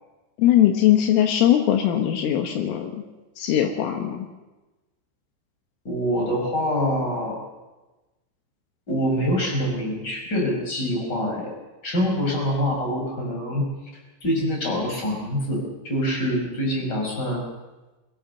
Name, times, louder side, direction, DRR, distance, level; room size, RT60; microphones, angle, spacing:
voice 1, 0.4-3.0 3.4-4.3, left 11 dB, 75° left, 5 dB, 3.8 m, -20 dB
voice 2, 5.8-7.4 8.9-11.5 11.8-13.7 14.2-17.5, equal, 20° left, 1 dB, 5.3 m, -25 dB
22.0 x 18.0 x 6.9 m, 1.1 s
omnidirectional pair, 5.9 m